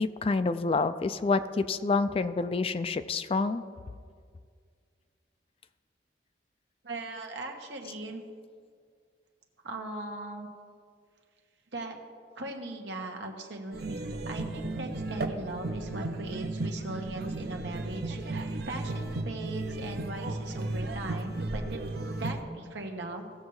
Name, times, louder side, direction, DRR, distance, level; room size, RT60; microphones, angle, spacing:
voice 1, 0.0-3.6, left 3 dB, 30° left, 12 dB, 0.3 m, -28 dB
voice 2, 6.8-8.2 9.6-10.5 11.7-12.0 12.4-21.8 22.1-23.3, right 2 dB, 85° right, 2 dB, 1.3 m, -39 dB
sound 1, 13.7-22.4, right 2 dB, 60° right, 0.7 m, -35 dB
17.5 x 7.1 x 3.2 m, 2.1 s
head